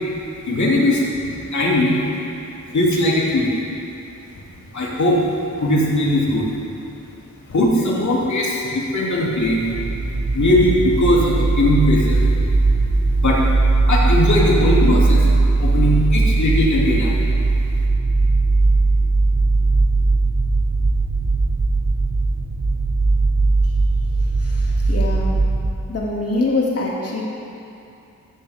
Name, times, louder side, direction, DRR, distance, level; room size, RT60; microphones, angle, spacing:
voice 1, 0.5-2.0 2.7-3.5 4.7-5.2 5.6-6.5 7.5-9.6 10.3-12.3 13.2-13.4 13.9-17.1, left 1 dB, 65° left, -5 dB, 2.9 m, -19 dB
sound 1, 9.4-25.7, right 3 dB, 40° right, 1.5 m, -18 dB
voice 2, 24.4-25.4 25.9-27.2, left 2 dB, 50° left, -4 dB, 2.7 m, -24 dB
16.0 x 14.0 x 3.7 m, 2.7 s
wide cardioid pair, 120°, 31 cm